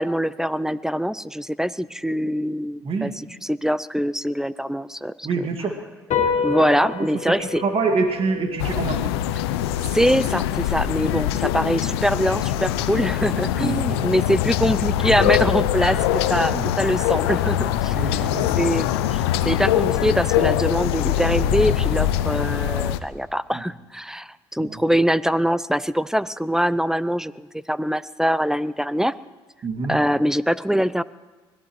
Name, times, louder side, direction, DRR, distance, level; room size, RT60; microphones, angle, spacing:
voice 1, 0.0-5.5 6.4-7.6 9.9-18.0 18.6-29.1 29.9-31.0, equal, 5° right, 18 dB, 0.4 m, -23 dB
voice 2, 5.2-5.7 6.4-6.5 6.8-9.1 13.6-14.1 16.5-16.7 17.9-18.5 23.5-23.6 24.6-24.8 29.6-30.0, right 4 dB, 45° right, 4 dB, 2.1 m, -26 dB
sound 1, 6.1-12.8, left 6 dB, 60° left, 2.4 m, -31 dB
sound 2, 8.6-23.0, left 11 dB, 90° left, 0.5 m, -23 dB
24.5 x 18.0 x 3.2 m, 1.3 s
hypercardioid pair, 65°, 13 cm